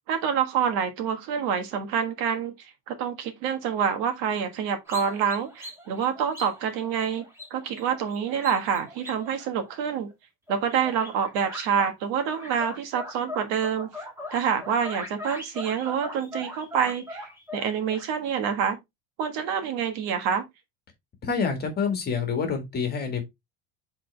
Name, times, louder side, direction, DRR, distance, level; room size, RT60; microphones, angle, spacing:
voice 1, 0.1-7.2 7.5-10.1 10.5-14.0 14.3-18.8 19.2-20.4, right 7 dB, 65° right, 1.5 m, -27 dB
sound 1, 4.9-10.1 10.5-11.9 12.2-18.1, left 1 dB, 5° right, 1.3 m, -41 dB
voice 2, 21.2-23.2, left 5 dB, 20° left, 1.7 m, -27 dB
7.6 x 4.0 x 3.2 m
cardioid pair, 170°, 43 cm